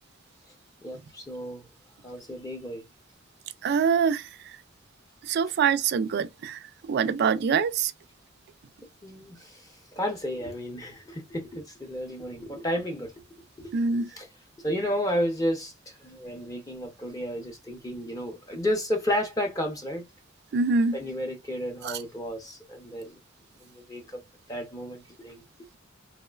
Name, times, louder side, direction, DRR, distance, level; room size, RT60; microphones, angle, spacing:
voice 1, 0.8-1.7 2.0-2.9 9.0-13.1 13.6-13.7 14.1-14.3 14.6-20.1 20.9-23.2 23.6-24.0 24.5-25.4, equal, 20° left, 0.6 m, -32 dB
voice 2, 3.6-4.3 5.3-6.6 6.9-7.9 13.7-14.1 20.5-21.0 21.8-22.0, right 5 dB, 55° right, 0.3 m, -24 dB
3.0 x 2.1 x 2.2 m
head